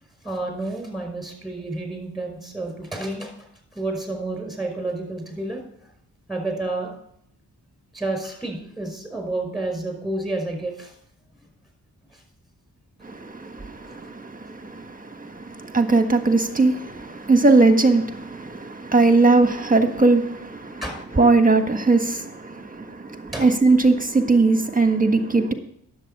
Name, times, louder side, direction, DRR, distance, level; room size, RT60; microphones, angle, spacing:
voice 1, 0.2-3.3 3.7-5.6 6.3-6.9 7.9-10.9 12.1-12.2 13.9-14.0 20.8-21.0 23.3-23.5, right 2 dB, ahead, 5.4 m, -30 dB
voice 2, 13.0-20.8 21.2-25.5, right 3 dB, 20° right, 1.6 m, -20 dB
10.0 x 7.9 x 5.4 m
cardioid pair, 50°, 40 cm